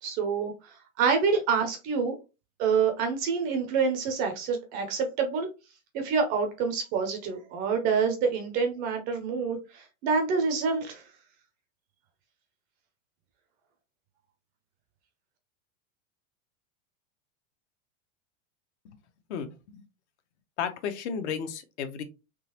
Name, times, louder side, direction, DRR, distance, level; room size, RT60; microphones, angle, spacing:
voice 1, 0.0-2.1 2.6-5.5 5.9-11.0, right 5 dB, 25° right, 5 dB, 0.4 m, -27 dB
voice 2, 19.3-19.8 20.6-22.0, left 7 dB, 65° left, 9 dB, 0.8 m, -33 dB
3.8 x 2.9 x 2.8 m, 0.28 s
supercardioid pair, 170°, 37 cm